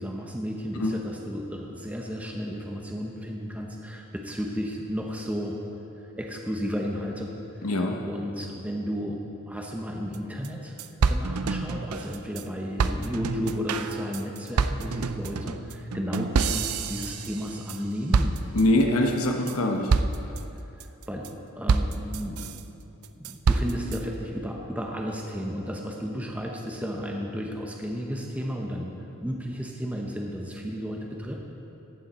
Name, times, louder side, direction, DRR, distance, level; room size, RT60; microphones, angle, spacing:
voice 1, 0.0-5.6 6.1-7.3 7.6-9.2 9.5-10.7 11.1-18.4 21.1-22.7 23.2-28.9 29.2-31.4, equal, 5° right, 0 dB, 0.8 m, -33 dB
voice 2, 7.6-7.9 18.5-19.9, left 1 dB, 80° left, 2 dB, 1.0 m, -23 dB
sound 1, 10.1-10.2 10.4-10.5 10.8-12.4 12.8-17.8 18.1-18.8 19.2-19.6 19.9-20.4 20.8-21.3 21.7-22.6 23.0-24.0, right 4 dB, 85° right, 0.5 m, -27 dB
14.5 x 8.9 x 4.2 m, 2.8 s
head